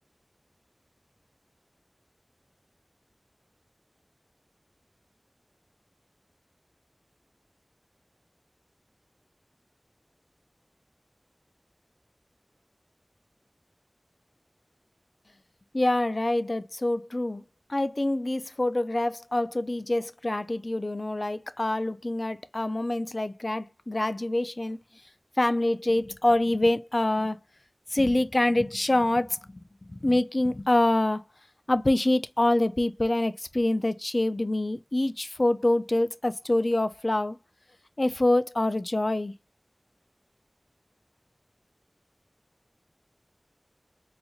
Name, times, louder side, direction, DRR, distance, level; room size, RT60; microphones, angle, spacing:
voice 1, 15.7-17.4 17.7-24.8 25.4-27.4 27.9-29.6 29.9-31.2 31.7-37.4 38.0-39.3, left 1 dB, 60° left, 0.4 m, -25 dB
4.0 x 2.9 x 2.3 m
wide cardioid pair, 40°, 0 cm